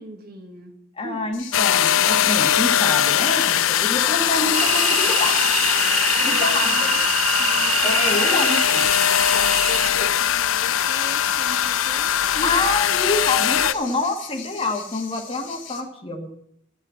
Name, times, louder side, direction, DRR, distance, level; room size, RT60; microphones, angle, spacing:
voice 1, 0.0-1.3 6.1-7.1 7.4-12.6, equal, 50° right, 3 dB, 1.9 m, -39 dB
voice 2, 1.0-5.6 6.2-6.7 7.8-8.8 12.4-16.3, left 2 dB, 25° left, 4 dB, 1.4 m, -27 dB
sound 1, 1.3-15.8, left 7 dB, 70° left, 2.3 m, -37 dB
sound 2, 1.5-13.7, left 10 dB, 85° left, 0.4 m, -20 dB
sound 3, 4.5-9.9, right 7 dB, 30° right, 0.6 m, -25 dB
13.0 x 6.2 x 8.2 m, 0.71 s
head